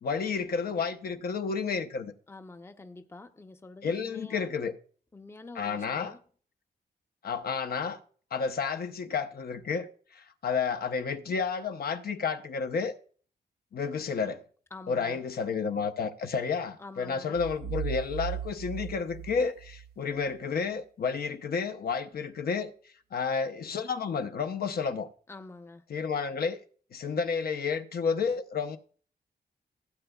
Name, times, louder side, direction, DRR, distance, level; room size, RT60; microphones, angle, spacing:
voice 1, 0.0-2.1 3.8-4.7 5.6-6.1 7.2-8.0 8.3-12.9 13.7-14.4 14.9-22.7 23.1-25.1 25.9-26.6 26.9-28.8, left 5 dB, 65° left, 0.8 m, -31 dB
voice 2, 2.3-4.5 5.1-6.2 14.7-15.2 16.8-17.4 25.3-25.8, left 3 dB, 15° left, 0.7 m, -47 dB
sound 1, 17.3-20.2, right 9 dB, 65° right, 0.5 m, -37 dB
16.0 x 7.9 x 2.3 m
wide cardioid pair, 120°, 17 cm